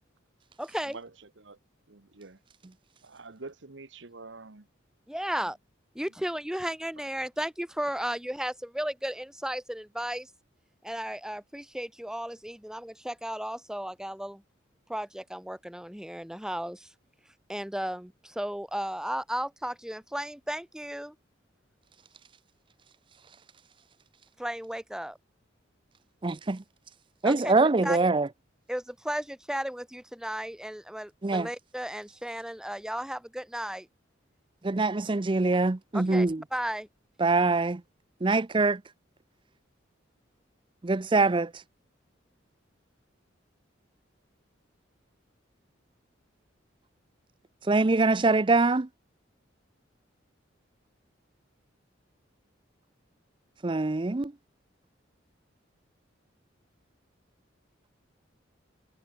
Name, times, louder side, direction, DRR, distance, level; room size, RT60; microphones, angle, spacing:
voice 1, 0.6-1.0 5.1-5.6 5.9-10.3 10.8-14.4 14.9-16.9 17.5-21.1 24.4-25.2 27.2-27.5 27.8-28.0 28.7-33.9 35.9-36.3 36.5-36.9, equal, 5° right, 0.9 m, -34 dB
voice 2, 1.9-2.4 3.0-4.7, right 3 dB, 70° right, 1.3 m, -46 dB
voice 3, 26.2-26.6 27.2-28.3 31.2-31.5 34.6-36.4 37.2-37.8 38.2-38.8 40.8-41.6 47.6-48.9 53.6-54.3, right 3 dB, 25° right, 0.5 m, -24 dB
head